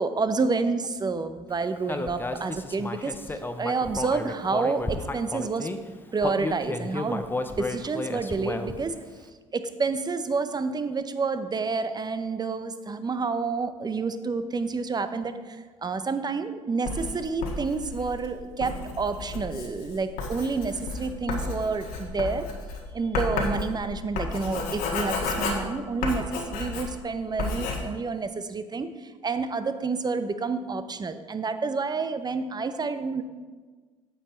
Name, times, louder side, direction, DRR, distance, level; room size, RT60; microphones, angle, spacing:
voice 1, 0.0-3.1 3.6-5.7 6.1-8.9 9.5-22.5 22.9-33.2, right 4 dB, 25° right, 11 dB, 0.8 m, -29 dB
Human voice, 1.9-5.8 6.2-8.9, left 2 dB, 15° left, 0.7 m, -32 dB
Writing, 16.8-27.1 27.4-27.8, left 3 dB, 65° left, 1.7 m, -32 dB
9.1 x 7.3 x 4.4 m, 1.4 s
hypercardioid pair, 60°, 16 cm